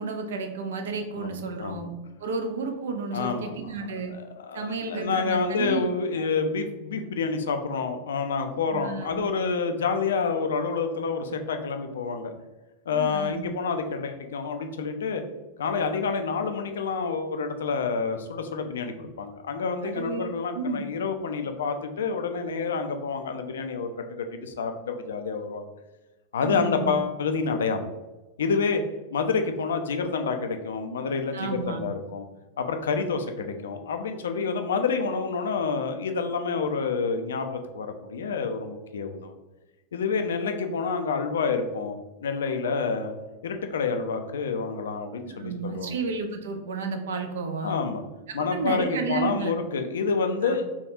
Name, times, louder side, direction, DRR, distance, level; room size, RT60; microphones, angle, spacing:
voice 1, 0.0-1.9 2.2-4.1 4.5-5.8 6.2-6.3 8.7-9.2 12.9-13.5 19.8-20.8 26.4-27.0 31.3-31.8 45.3-47.8 48.4-49.5 50.4-50.5, right 4 dB, 60° right, 5 dB, 0.4 m, -32 dB
voice 2, 1.1-1.9 3.1-3.5 3.8-12.3 12.9-15.2 15.6-25.6 26.3-27.9 28.4-28.8 29.1-32.2 32.6-39.4 39.9-43.1 43.4-45.9 47.6-48.0 48.3-50.8, left 5 dB, 65° left, 6 dB, 0.3 m, -28 dB
3.4 x 2.3 x 2.7 m, 1.1 s
figure-of-eight pair, 90°, 0 cm